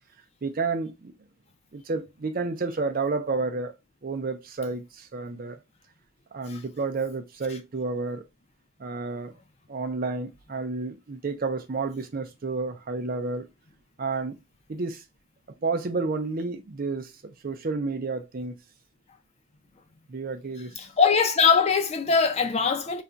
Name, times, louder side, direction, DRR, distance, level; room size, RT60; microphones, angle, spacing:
voice 1, 0.4-1.1 1.7-3.7 4.0-5.6 6.3-8.2 8.8-9.3 9.7-13.5 14.0-14.4 14.7-15.0 15.6-18.5 20.1-20.7, right 3 dB, 45° right, 0.5 m, -30 dB
voice 2, 20.8-23.0, left 5 dB, 30° left, 0.4 m, -22 dB
2.4 x 2.2 x 3.8 m
head